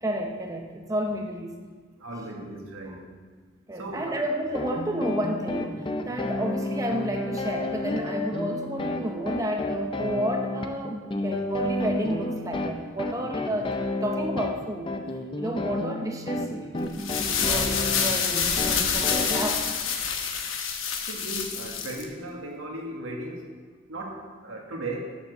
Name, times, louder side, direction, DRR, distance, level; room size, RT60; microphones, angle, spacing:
voice 1, 0.0-1.6 3.7-15.0 15.4-19.6, equal, 15° right, 2 dB, 0.8 m, -31 dB
voice 2, 2.0-3.1 3.7-4.2 21.1-23.5 23.9-25.0, right 1 dB, 80° right, 0 dB, 1.6 m, -36 dB
sound 1, 4.5-19.5, left 2 dB, 25° left, 0.5 m, -31 dB
sound 2, 16.9-22.0, left 6 dB, 75° left, 1.0 m, -27 dB
7.2 x 6.9 x 6.6 m, 1.5 s
head